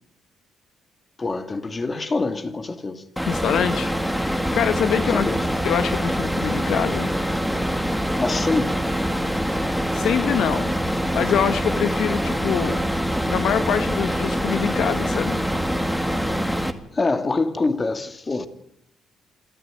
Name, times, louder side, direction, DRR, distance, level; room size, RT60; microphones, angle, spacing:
voice 1, 1.2-3.0 5.0-5.4 8.1-8.8 16.9-18.5, left 3 dB, 30° left, 2.6 m, -25 dB
voice 2, 3.2-5.3 5.6-7.1 9.5-10.7 11.1-12.8 13.3-15.5, left 8 dB, 75° left, 1.4 m, -25 dB
sound 1, 3.2-16.7, equal, 5° left, 2.2 m, -24 dB
27.0 x 14.0 x 9.2 m
cardioid pair, 90°, 0 cm